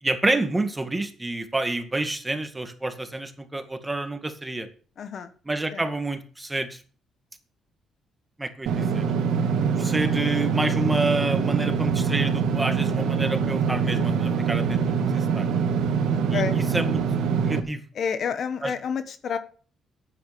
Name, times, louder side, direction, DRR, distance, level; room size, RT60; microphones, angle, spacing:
voice 1, 0.0-4.7 5.5-6.8 8.4-9.1 9.8-15.5 16.3-17.0 17.4-17.8 18.6-18.7, right 2 dB, 15° right, 8 dB, 2.0 m, -28 dB
voice 2, 5.0-5.3 5.7-5.8 16.1-17.0 17.9-19.4, left 6 dB, 60° left, 11 dB, 1.2 m, -30 dB
Engine / Mechanisms, 8.7-17.6, right 6 dB, 80° right, 1.7 m, -24 dB
9.9 x 9.0 x 6.9 m, 0.41 s
cardioid pair, 90°, 0 cm